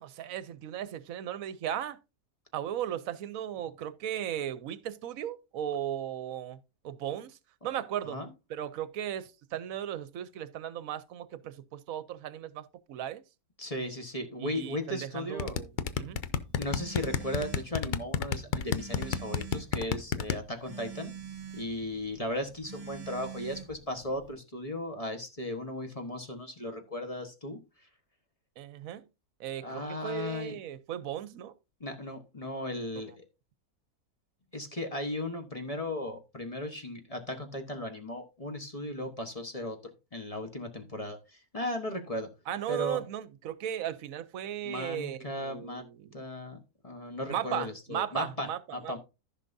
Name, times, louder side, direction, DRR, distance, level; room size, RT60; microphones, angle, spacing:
voice 1, 0.0-2.0 2.5-6.6 6.8-7.4 7.6-8.2 8.5-13.2 14.4-16.2 28.6-29.1 29.4-31.5 42.5-46.2 47.3-49.0, right 10 dB, 65° right, 1.1 m, -36 dB
voice 2, 13.6-15.6 16.6-21.1 21.5-27.6 29.6-30.5 31.8-33.2 34.5-39.8 40.1-42.3 42.7-43.0 44.6-45.8 46.1-46.6 46.8-49.0, left 1 dB, 25° left, 1.2 m, -36 dB
sound 1, 15.4-20.4, left 7 dB, 70° left, 0.4 m, -29 dB
Telephone, 15.8-24.3, right 7 dB, 30° right, 1.4 m, -46 dB
14.5 x 5.9 x 2.7 m
omnidirectional pair, 1.6 m